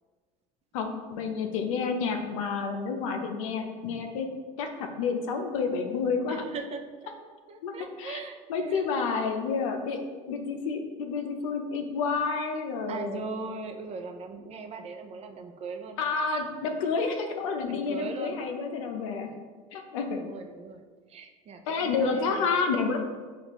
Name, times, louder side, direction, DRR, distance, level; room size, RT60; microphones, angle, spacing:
voice 1, 0.7-4.3 4.6-6.4 7.6-7.7 8.0-8.2 8.5-10.0 10.3-13.3 16.0-19.3 19.7-20.2 21.7-23.0, left 5 dB, 85° left, 5 dB, 0.6 m, -29 dB
voice 2, 6.3-6.8 7.5-8.9 12.9-16.1 17.7-18.5 19.2-19.4 20.1-22.6, right 4 dB, 40° right, 5 dB, 0.5 m, -40 dB
6.5 x 2.5 x 3.0 m, 1.5 s
supercardioid pair, 90°, 16 cm